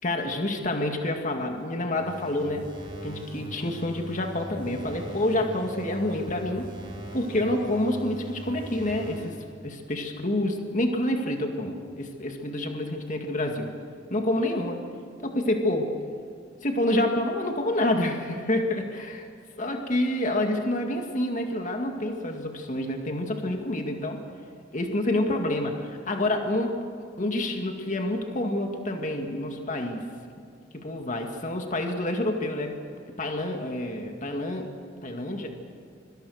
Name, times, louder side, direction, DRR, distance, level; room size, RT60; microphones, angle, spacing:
voice 1, 0.0-2.7 3.0-6.7 7.1-13.7 14.1-14.8 15.2-16.0 16.6-19.2 19.6-24.2 24.7-26.8 27.2-30.0 30.7-32.8 33.2-34.7 35.0-35.5, left 1 dB, 40° left, 3 dB, 2.1 m, -28 dB
sound 1, 2.0-9.4, right 1 dB, 25° right, 7.2 m, -41 dB
25.5 x 24.5 x 6.5 m, 2.3 s
head